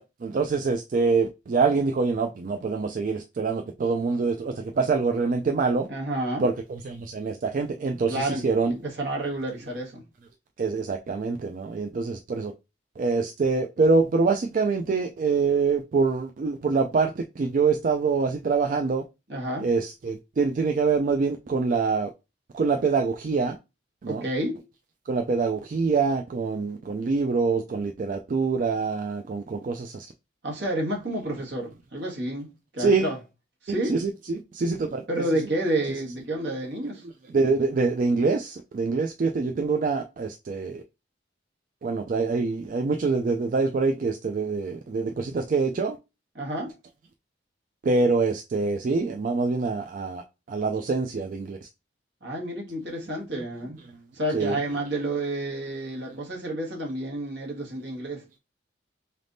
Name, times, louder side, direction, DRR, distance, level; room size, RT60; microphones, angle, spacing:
voice 1, 0.0-5.9 6.4-8.7 10.6-12.5 13.0-19.0 19.6-22.1 22.5-23.6 24.0-24.2 25.1-30.1 32.8-33.1 33.9-35.0 37.3-40.8 41.8-46.0 47.8-51.7 54.3-54.6 56.0-56.2, right 4 dB, 45° right, 0.3 m, -25 dB
voice 2, 5.9-6.5 8.1-8.4 8.7-10.0 19.3-19.7 24.1-24.6 30.4-33.2 33.6-34.0 35.1-37.0 46.3-46.7 52.2-53.8 54.1-58.2, right 1 dB, 70° right, 1.5 m, -30 dB
4.0 x 3.4 x 2.6 m
head